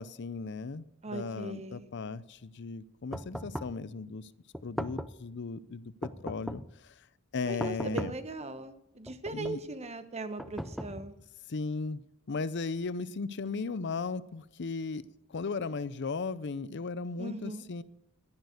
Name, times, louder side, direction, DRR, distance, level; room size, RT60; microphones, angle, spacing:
voice 1, 0.0-4.3 4.6-6.9 7.3-8.1 9.3-9.6 11.5-12.0 12.3-15.0 15.3-17.8, left 4 dB, 55° left, 16 dB, 0.6 m, -36 dB
voice 2, 1.0-1.9 7.4-11.2 17.2-17.6, right 2 dB, 30° right, 10 dB, 1.0 m, -39 dB
sound 1, 3.1-3.8 4.5-5.3 6.0-6.8 7.6-8.3 9.1-9.7 10.4-11.3, equal, ahead, 0.4 m, -39 dB
11.5 x 10.5 x 6.5 m, 0.82 s
head